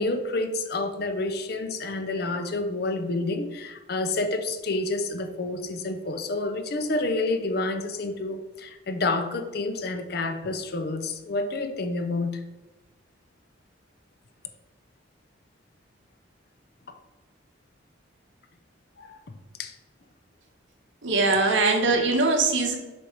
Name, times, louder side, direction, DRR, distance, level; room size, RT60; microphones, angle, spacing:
voice 1, 0.0-12.4 16.9-17.0 19.0-19.2 19.6-19.7, left 2 dB, 50° left, 0.6 m, -29 dB
voice 2, 21.0-22.8, right 3 dB, 70° right, 1.1 m, -21 dB
6.9 x 3.4 x 4.6 m
head